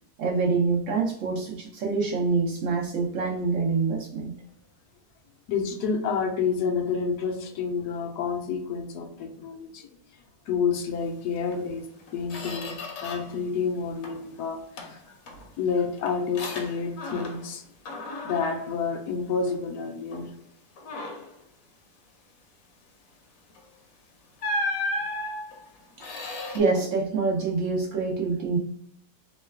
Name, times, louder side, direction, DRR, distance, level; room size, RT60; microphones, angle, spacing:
voice 1, 0.2-4.4 26.0-26.1 26.5-28.6, right 4 dB, 65° right, -2 dB, 0.8 m, -26 dB
voice 2, 5.5-9.9 10.5-11.9 12.1-15.2 15.6-17.6 18.2-20.3, left 5 dB, 80° left, 3 dB, 1.1 m, -29 dB
Squeak, 11.5-11.6 12.0-13.4 13.7-14.3 14.8-17.6 17.8-19.7 20.1-20.3 20.8-21.4 23.5-23.7 24.4-26.6, left 1 dB, 65° left, 1.0 m, -35 dB
3.1 x 2.2 x 3.3 m, 0.74 s
omnidirectional pair, 1.7 m